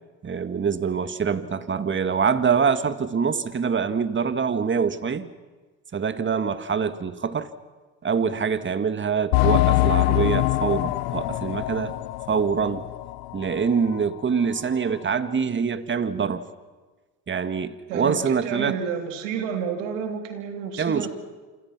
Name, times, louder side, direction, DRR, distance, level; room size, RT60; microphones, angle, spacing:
voice 1, 0.2-5.3 5.9-7.5 8.0-11.9 12.3-12.8 13.3-16.4 17.3-18.8 20.8-21.1, right 6 dB, 30° right, 11 dB, 1.7 m, -25 dB
sound 1, 9.3-13.6 13.9-14.0 14.6-14.7, left 19 dB, 75° left, 0.9 m, -24 dB
voice 2, 17.9-21.1, right 7 dB, 90° right, 5 dB, 3.6 m, -30 dB
28.0 x 26.0 x 6.0 m, 1.3 s
supercardioid pair, 80°, 37 cm